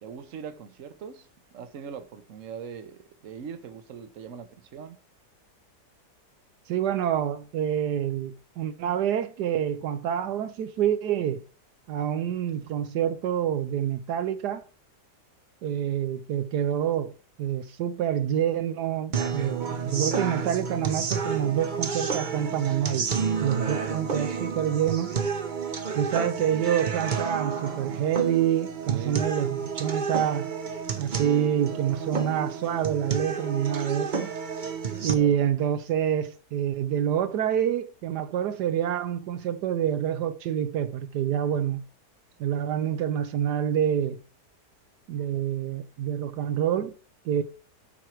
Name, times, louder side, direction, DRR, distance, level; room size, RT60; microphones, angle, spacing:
voice 1, 0.0-5.0 28.9-29.2 34.9-35.4, right 7 dB, 55° right, 1.2 m, -41 dB
voice 2, 6.7-11.4 11.9-14.6 15.6-17.1 17.4-25.1 25.9-30.5 31.0-34.3 35.0-41.8 42.4-44.2 45.1-47.0 47.2-47.4, right 9 dB, 80° right, 1.3 m, -27 dB
sound 1, 19.1-35.1, right 5 dB, 35° right, 0.9 m, -30 dB
12.5 x 4.6 x 4.5 m
omnidirectional pair, 1.8 m